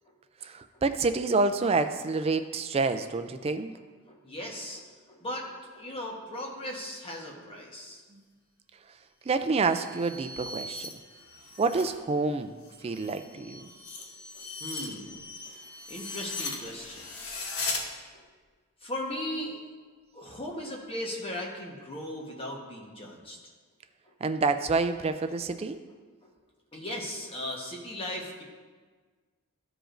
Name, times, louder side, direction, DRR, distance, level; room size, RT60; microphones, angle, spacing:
voice 1, 0.4-3.7 8.1-8.2 9.2-10.9 11.6-12.6 12.8-13.7 24.2-25.8, right 3 dB, 25° right, 9 dB, 0.3 m, -28 dB
voice 2, 3.4-8.0 13.6-13.7 14.0-17.1 17.3-17.4 18.1-18.2 18.8-19.6 20.1-23.4 24.0-24.1 26.2-26.3 26.7-28.4, left 1 dB, 25° left, -1 dB, 1.2 m, -38 dB
sound 1, 9.5-12.0 12.3-17.8, left 3 dB, 80° left, 1.1 m, -39 dB
14.5 x 4.9 x 2.5 m, 1.5 s
head